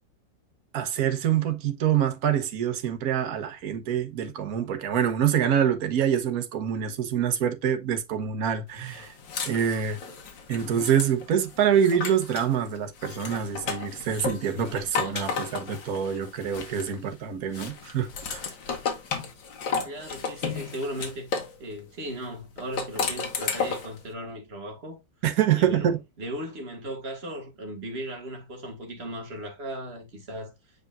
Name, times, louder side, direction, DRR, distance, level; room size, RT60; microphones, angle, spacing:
voice 1, 0.7-9.1 9.4-10.0 10.5-18.4 25.2-26.0, right 9 dB, 60° right, 1.4 m, -26 dB
sound 1, 8.9-12.5 13.0-17.1 17.5-21.6 22.6-24.0, left 5 dB, 85° left, 2.1 m, -33 dB
voice 2, 19.8-21.3 21.6-25.0 25.6-25.9 26.2-30.5, right 1 dB, 35° right, 1.9 m, -37 dB
7.9 x 5.0 x 2.4 m
omnidirectional pair, 2.0 m